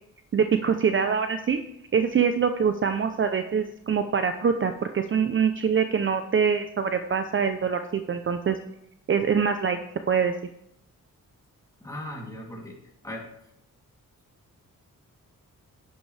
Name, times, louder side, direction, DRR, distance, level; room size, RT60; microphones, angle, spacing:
voice 1, 0.3-1.6 1.9-8.6 9.1-9.8 10.1-10.3, right 6 dB, 40° right, 8 dB, 0.6 m, -24 dB
voice 2, 11.8-12.8 13.0-13.3, left 1 dB, 10° left, -2 dB, 2.9 m, -37 dB
11.0 x 10.0 x 3.3 m, 0.78 s
cardioid pair, 105°, 32 cm